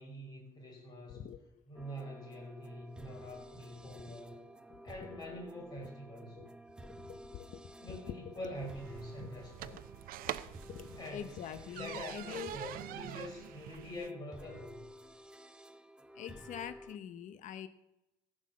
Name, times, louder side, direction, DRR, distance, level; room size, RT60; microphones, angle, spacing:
voice 1, 0.0-1.3 1.7-4.5 4.8-6.4 7.7-9.8 10.9-11.3 11.7-14.9, equal, 30° left, -1 dB, 5.8 m, -45 dB
voice 2, 1.1-1.4 3.8-4.2 4.7-4.8 6.4-6.5 6.9-7.6 8.1-8.2 9.2-9.3 10.3-10.4 10.7-12.6 16.2-17.7, left 10 dB, 60° left, 11 dB, 0.8 m, -45 dB
sound 1, 1.7-17.0, right 1 dB, 5° right, 0.6 m, -53 dB
sound 2, 8.5-14.1, right 13 dB, 75° right, 0.6 m, -45 dB
16.0 x 6.5 x 7.5 m, 0.92 s
cardioid pair, 145°, 15 cm